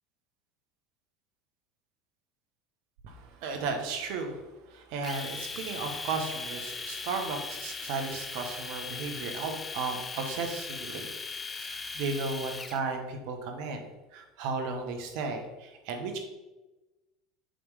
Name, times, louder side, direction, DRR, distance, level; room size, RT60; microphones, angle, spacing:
voice 1, 3.0-11.1 11.6-16.2, right 4 dB, 65° right, 4 dB, 1.3 m, -35 dB
Domestic sounds home sounds, 5.0-12.8, left 4 dB, 25° left, 0.6 m, -39 dB
7.7 x 3.6 x 5.0 m, 1.1 s
hypercardioid pair, 80°, 0 cm